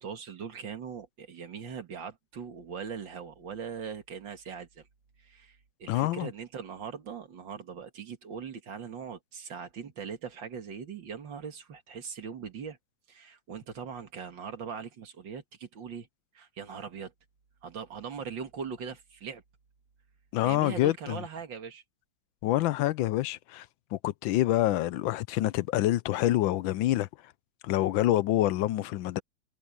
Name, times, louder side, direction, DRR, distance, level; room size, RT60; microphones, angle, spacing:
voice 1, 0.0-4.8 5.2-12.8 13.1-16.1 16.3-17.1 17.6-19.4 20.4-21.8, right 6 dB, 70° right, 2.5 m, -40 dB
voice 2, 5.9-6.3 20.3-21.2 22.4-23.7 23.9-27.1 27.6-29.2, left 14 dB, 85° left, 1.4 m, -26 dB
omnidirectional pair, 2.1 m